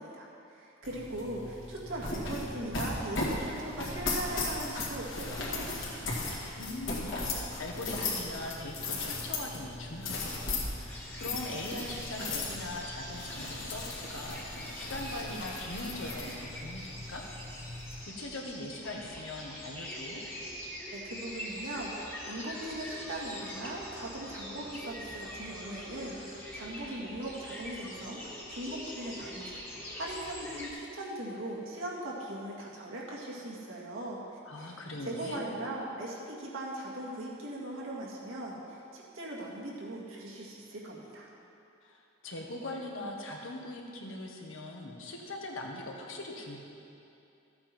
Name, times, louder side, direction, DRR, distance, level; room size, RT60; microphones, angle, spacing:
voice 1, 0.0-6.1 20.9-29.6 29.9-41.3, right 1 dB, 80° right, -4 dB, 2.0 m, -40 dB
sound 1, 0.8-18.0, left 2 dB, 65° left, 2.1 m, -37 dB
voice 2, 6.6-17.3 18.0-20.2 34.4-35.4 41.8-46.6, left 1 dB, 80° left, 0 dB, 1.5 m, -41 dB
sound 2, 10.9-30.7, left 1 dB, 10° left, 1.5 m, -43 dB
13.5 x 8.6 x 4.5 m, 2.7 s
head